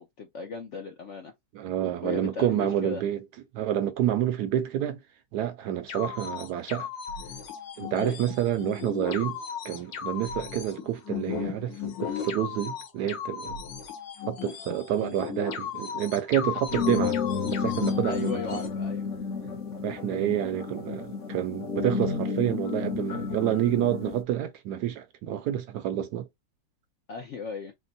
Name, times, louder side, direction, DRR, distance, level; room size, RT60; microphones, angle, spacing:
voice 1, 0.0-1.3 2.0-3.0 7.9-8.2 18.1-19.1 27.1-27.7, left 5 dB, 65° left, 0.7 m, -37 dB
voice 2, 1.5-3.2 3.5-5.0 5.3-6.9 7.8-9.4 9.6-13.6 14.3-17.2 17.5-18.6 19.8-26.3, right 11 dB, 75° right, 1.1 m, -28 dB
sound 1, 5.9-18.7, left 8 dB, 85° left, 1.7 m, -36 dB
sound 2, 16.7-24.2, left 5 dB, 50° left, 1.2 m, -31 dB
4.4 x 2.1 x 4.0 m
omnidirectional pair, 1.9 m